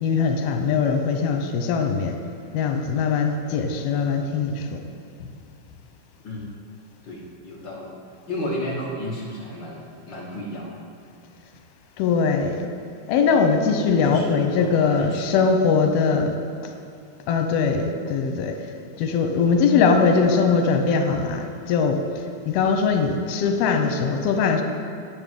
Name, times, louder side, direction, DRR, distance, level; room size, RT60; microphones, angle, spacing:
voice 1, 0.0-2.2 2.5-4.8 5.2-5.3 12.0-12.6 13.1-16.4 17.3-18.6 19.0-24.6, left 5 dB, 85° left, 5 dB, 2.9 m, -21 dB
voice 2, 6.2-6.6 7.0-8.0 8.3-10.8 14.0-15.4, equal, 60° left, -4 dB, 1.2 m, -33 dB
9.3 x 8.1 x 9.2 m, 2.3 s
omnidirectional pair, 4.2 m